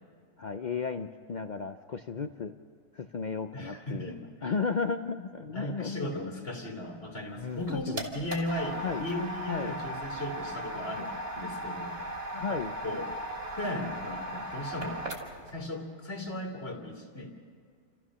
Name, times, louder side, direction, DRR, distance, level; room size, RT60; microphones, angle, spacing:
voice 1, 0.4-2.5 2.9-6.1 7.4-8.0 8.8-9.0 9.5-9.7 12.4-12.7, left 5 dB, 80° left, 8 dB, 0.4 m, -34 dB
voice 2, 3.5-4.5 5.5-12.0 12.3-13.2 13.5-15.1 15.5-17.3, left 1 dB, 40° left, -1 dB, 2.5 m, -37 dB
sound 1, 7.4-15.5, right 1 dB, 55° right, 3.3 m, -37 dB
29.5 x 14.5 x 6.2 m, 2.1 s
omnidirectional pair, 1.6 m